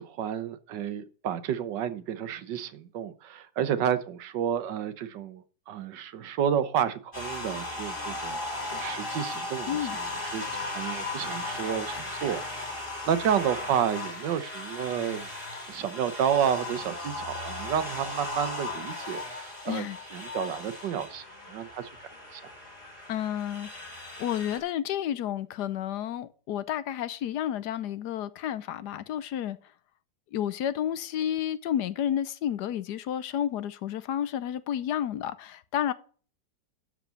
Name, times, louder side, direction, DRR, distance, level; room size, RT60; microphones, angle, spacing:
voice 1, 0.0-15.3 15.7-19.9 20.1-22.4, right 9 dB, 85° right, 1.6 m, -31 dB
sound 1, 7.1-24.6, left 2 dB, 30° left, 4.6 m, -37 dB
voice 2, 9.7-10.0 19.7-20.0 23.1-23.8 24.2-29.6 30.3-35.9, left 10 dB, 75° left, 1.2 m, -31 dB
12.5 x 5.0 x 6.9 m
omnidirectional pair, 1.9 m